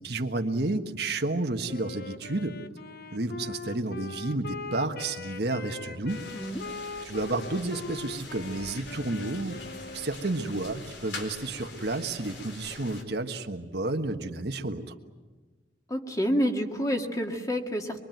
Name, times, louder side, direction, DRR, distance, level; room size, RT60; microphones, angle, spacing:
voice 1, 0.0-2.6 3.1-6.2 7.1-14.8, right 2 dB, 60° right, 5 dB, 1.5 m, -31 dB
Wind instrument woodwind instrument, 1.7-10.5, left 4 dB, 55° left, 1.0 m, -41 dB
sound 1, 6.1-13.0, left 3 dB, 75° left, 4.1 m, -44 dB
voice 2, 15.9-18.0, equal, 20° left, 3 dB, 2.1 m, -28 dB
25.0 x 23.5 x 9.2 m, 1.3 s
head